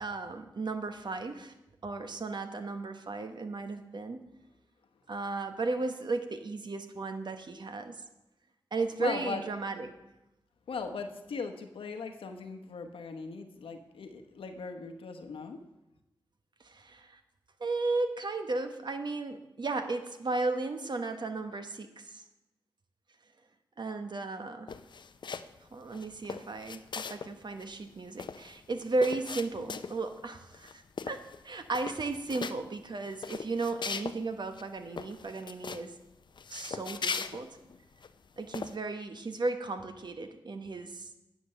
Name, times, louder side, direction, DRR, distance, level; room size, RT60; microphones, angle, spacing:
voice 1, 0.0-1.5 1.8-4.2 5.1-8.0 8.7-9.9 16.6-17.2 17.6-22.2 23.8-24.7 25.7-36.0 36.5-37.6 38.4-41.1, right 3 dB, 55° right, 7 dB, 1.1 m, -35 dB
voice 2, 9.0-9.4 10.7-15.6, left 5 dB, 85° left, 5 dB, 1.0 m, -39 dB
sound 1, 24.7-25.6 25.9-27.3 27.6-27.7 27.9-30.1 30.5-30.7 31.0-31.4 31.7-32.6 33.0-34.2 34.5-34.6 35.0-35.9 36.4-38.1 38.5-38.7, left 5 dB, 60° left, 0.5 m, -39 dB
9.8 x 6.1 x 6.5 m, 0.94 s
cardioid pair, 50°, 9 cm